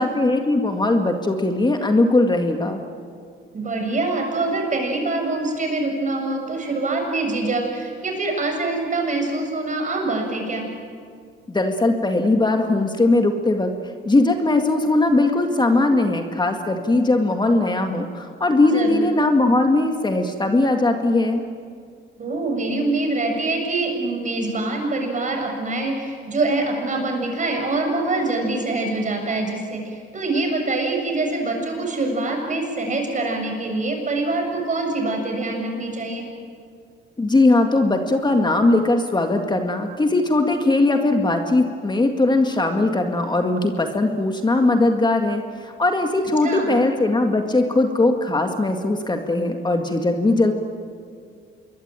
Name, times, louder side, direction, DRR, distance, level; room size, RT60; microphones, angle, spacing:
voice 1, 0.0-2.8 11.5-13.7 14.1-21.4 37.2-50.5, left 2 dB, 20° left, 4 dB, 2.0 m, -19 dB
voice 2, 3.5-10.7 18.7-19.0 22.2-36.3 46.4-46.7, right 2 dB, 40° right, 2 dB, 7.0 m, -24 dB
26.5 x 22.0 x 9.1 m, 2.2 s
cardioid pair, 90°, 20 cm